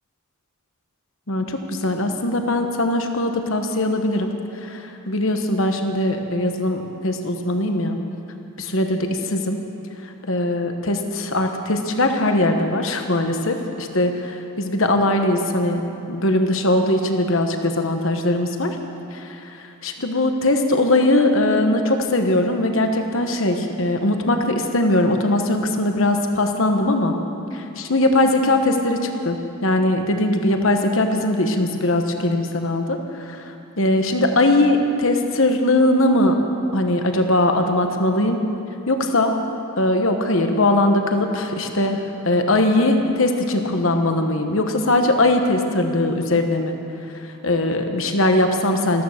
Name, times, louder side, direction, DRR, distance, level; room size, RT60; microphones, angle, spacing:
voice 1, 1.3-8.0 8.6-9.6 10.0-18.8 19.1-27.1 27.5-36.4 36.7-38.4 38.9-39.4 39.8-46.8 47.1-49.0, left 1 dB, 60° left, 5 dB, 1.2 m, -20 dB
14.0 x 14.0 x 6.6 m, 2.8 s
head